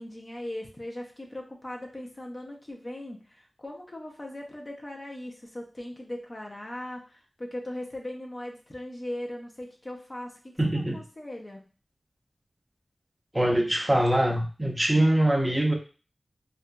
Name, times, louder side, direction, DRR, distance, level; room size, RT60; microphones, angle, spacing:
voice 1, 0.0-11.6, left 1 dB, 35° left, 0 dB, 0.6 m, -39 dB
voice 2, 10.6-11.0 13.3-15.7, right 1 dB, 15° right, 0 dB, 0.6 m, -23 dB
2.7 x 2.5 x 2.2 m, 0.36 s
wide cardioid pair, 55°, 0 cm